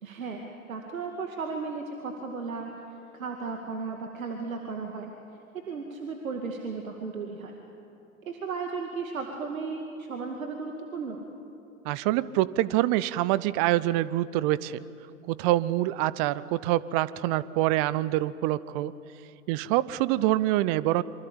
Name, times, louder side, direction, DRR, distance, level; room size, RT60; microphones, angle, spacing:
voice 1, 0.0-2.7 3.1-5.1 5.5-7.6 8.2-11.3, right 4 dB, 70° right, 3 dB, 2.3 m, -35 dB
voice 2, 11.8-14.8 15.3-18.9 19.5-21.0, right 15 dB, 25° right, 19 dB, 0.5 m, -25 dB
26.5 x 24.5 x 8.9 m, 2.8 s
figure-of-eight pair, 105°, 42 cm